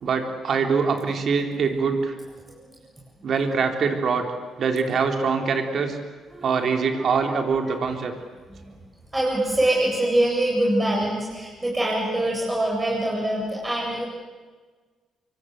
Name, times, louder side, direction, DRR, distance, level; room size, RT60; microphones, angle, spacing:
voice 1, 0.0-2.2 3.2-4.3 4.6-6.0 6.4-8.1, right 5 dB, 55° right, 4 dB, 3.9 m, -23 dB
voice 2, 9.1-14.0, right 1 dB, 15° right, -3 dB, 7.7 m, -24 dB
25.5 x 24.0 x 8.2 m, 1.4 s
cardioid pair, 90°, 0 cm